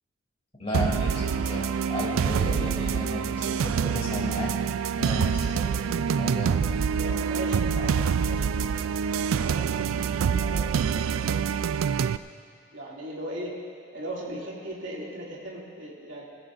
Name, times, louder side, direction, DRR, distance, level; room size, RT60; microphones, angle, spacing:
voice 1, 0.6-1.6 1.9-4.5 5.0-6.6, left 1 dB, 30° left, -4 dB, 3.0 m, -34 dB
sound 1, 0.7-12.2, right 7 dB, 80° right, 0.3 m, -26 dB
voice 2, 6.8-9.7 10.3-11.8 12.7-13.6 13.9-16.2, right 1 dB, 65° right, -4 dB, 2.7 m, -38 dB
21.5 x 15.0 x 2.6 m, 2.3 s
head